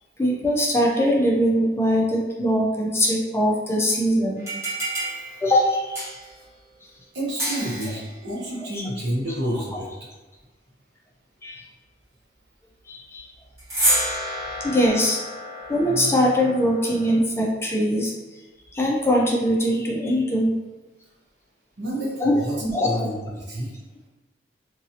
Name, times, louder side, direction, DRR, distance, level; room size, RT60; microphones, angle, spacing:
voice 1, 0.2-4.5 5.0-5.1 5.4-6.1 8.7-8.8 9.7-9.8 11.4-11.6 12.9-13.3 14.6-15.2 15.7-18.1 18.7-20.5 22.2-22.4 22.7-22.9, equal, 15° left, -2 dB, 0.4 m, -21 dB
sound 1, 4.4-6.4 7.4-8.1 13.6-17.2, right 1 dB, 15° right, 1.0 m, -29 dB
voice 2, 7.1-9.9 21.8-23.7, right 1 dB, 80° right, -4 dB, 1.0 m, -29 dB
2.9 x 2.6 x 2.7 m, 1.2 s
head